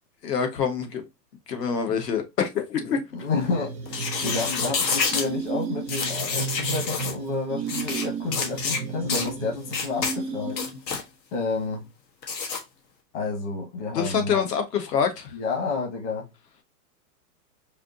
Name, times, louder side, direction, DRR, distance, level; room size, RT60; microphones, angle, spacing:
voice 1, 0.2-1.0 1.5-3.0 13.9-15.3, left 7 dB, 70° left, 1.6 m, -26 dB
voice 2, 3.1-10.6 11.3-11.9 13.1-14.4 15.3-16.3, left 4 dB, 45° left, 1.6 m, -30 dB
sound 1, 3.4-11.0, right 5 dB, 10° right, 0.4 m, -34 dB
sound 2, 3.9-5.3 5.9-7.1 7.7-8.0 8.3-8.8 9.1-9.3 9.7-10.1 10.5-11.0 12.2-12.6, left 5 dB, 85° left, 1.5 m, -28 dB
5.0 x 2.8 x 2.6 m
hypercardioid pair, 155°, 49 cm